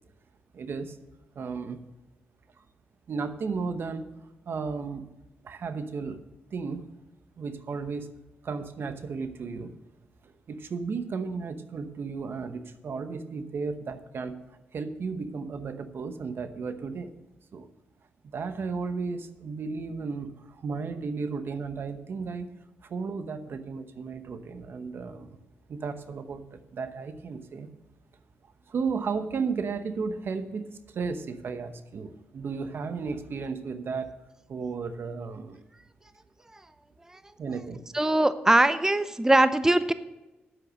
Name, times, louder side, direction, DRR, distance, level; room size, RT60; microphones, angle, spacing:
voice 1, 0.5-1.0 1.3-1.8 2.6-2.7 3.1-4.0 4.5-5.1 5.4-6.2 6.5-6.8 7.4-8.1 8.4-9.7 10.2-14.4 14.7-17.1 17.5-17.7 18.3-22.5 22.8-25.4 25.7-27.7 28.7-34.1 34.5-35.6 37.4-37.8, right 5 dB, 65° right, 10 dB, 1.0 m, -34 dB
voice 2, 37.9-39.9, right 1 dB, 15° right, 13 dB, 0.6 m, -21 dB
9.2 x 8.2 x 6.4 m, 1.0 s
supercardioid pair, 55°, 4 cm